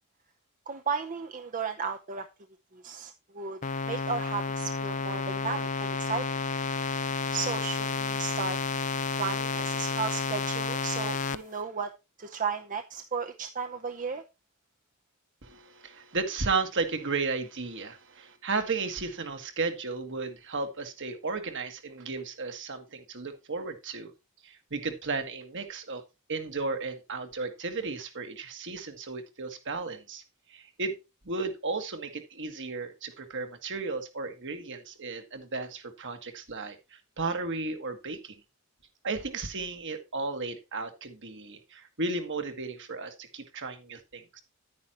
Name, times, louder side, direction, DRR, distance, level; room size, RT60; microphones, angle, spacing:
voice 1, 0.7-2.3 2.7-3.6 3.8-6.3 7.3-8.6 9.2-11.9 12.2-14.2, right 5 dB, 40° right, 7 dB, 0.7 m, -34 dB
sound 1, 3.6-11.4, left 5 dB, 35° left, 0.5 m, -31 dB
voice 2, 15.4-24.1 24.4-26.0 26.3-30.2 30.5-31.0 31.3-38.3 39.0-44.4, right 3 dB, 55° right, 7 dB, 1.7 m, -34 dB
10.5 x 9.5 x 3.0 m, 0.26 s
head